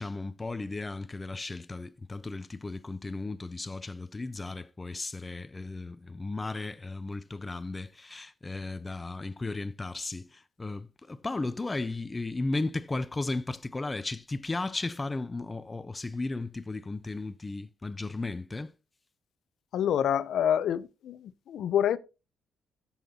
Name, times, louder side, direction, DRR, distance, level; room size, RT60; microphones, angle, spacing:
voice 1, 0.0-18.7, left 2 dB, 20° left, 0.5 m, -35 dB
voice 2, 19.7-21.2 21.5-22.0, left 9 dB, 70° left, 0.6 m, -26 dB
14.0 x 7.2 x 2.8 m
cardioid pair, 90°, 0 cm